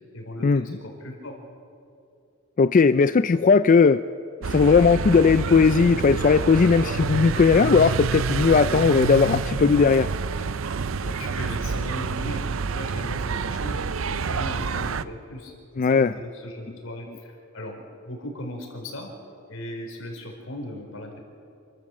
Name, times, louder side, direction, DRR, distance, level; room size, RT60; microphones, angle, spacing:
voice 1, 0.1-1.4 11.0-19.1 19.5-21.2, left 1 dB, 80° left, 2 dB, 4.5 m, -37 dB
voice 2, 2.6-4.0 4.5-10.1 15.8-16.1, left 5 dB, 40° left, 12 dB, 0.4 m, -18 dB
sound 1, 4.4-15.0, right 5 dB, 80° right, 0.6 m, -28 dB
28.5 x 13.0 x 7.5 m, 2.5 s
head